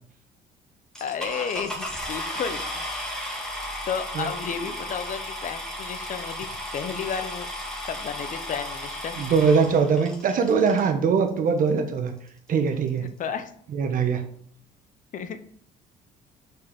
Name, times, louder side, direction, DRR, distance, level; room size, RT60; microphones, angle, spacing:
sound 1, 0.9-10.9 11.7-11.8 12.3-12.4 12.6-12.9, left 1 dB, 5° left, 2.0 m, -34 dB
voice 1, 1.0-2.8 3.9-7.5 7.9-9.2 12.9-13.5 15.1-15.4, left 7 dB, 50° left, 10 dB, 0.7 m, -32 dB
voice 2, 9.2-12.1 12.5-13.1 13.7-14.2, right 5 dB, 55° right, 6 dB, 1.1 m, -22 dB
5.4 x 4.6 x 5.2 m, 0.63 s
cardioid pair, 110°, 17 cm